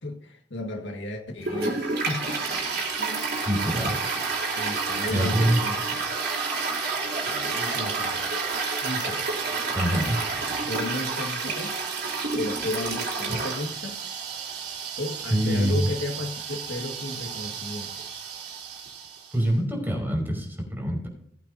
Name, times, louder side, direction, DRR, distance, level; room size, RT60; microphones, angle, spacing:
voice 1, 0.0-2.6 3.0-3.4 4.2-4.3 4.5-6.0 7.2-8.2 8.8-9.2 10.6-11.8 12.3-14.0 15.0-18.1, left 2 dB, 85° left, 1.8 m, -34 dB
Toilet flush, 1.4-19.3, right 4 dB, 60° right, 3.9 m, -30 dB
voice 2, 3.5-4.0 5.1-5.6 9.8-10.2 15.3-15.9 19.3-21.1, equal, 10° right, 5.4 m, -25 dB
20.0 x 8.7 x 2.8 m
head